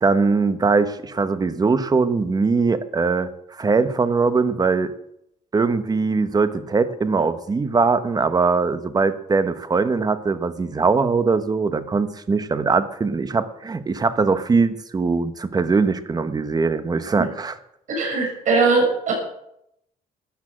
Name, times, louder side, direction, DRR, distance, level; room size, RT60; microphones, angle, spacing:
voice 1, 0.0-4.9 5.5-17.6, right 4 dB, 25° right, 12 dB, 1.1 m, -21 dB
voice 2, 17.9-19.1, right 4 dB, 55° right, -1 dB, 6.9 m, -20 dB
13.0 x 10.5 x 7.6 m, 0.76 s
cardioid pair, 120°, 16 cm